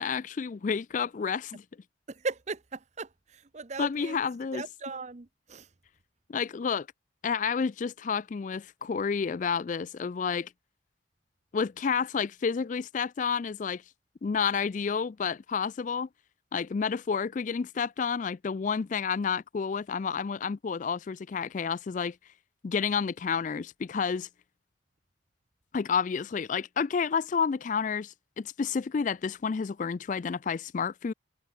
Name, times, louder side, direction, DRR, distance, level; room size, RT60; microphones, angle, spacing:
voice 1, 0.0-1.6 3.8-4.6 6.3-6.9 7.2-10.5 11.5-13.8 14.2-16.1 16.5-22.2 22.6-24.3 25.7-31.1, left 6 dB, 40° left, 0.3 m, -30 dB
voice 2, 2.1-4.2 4.5-5.7, right 3 dB, 35° right, 0.7 m, -38 dB
head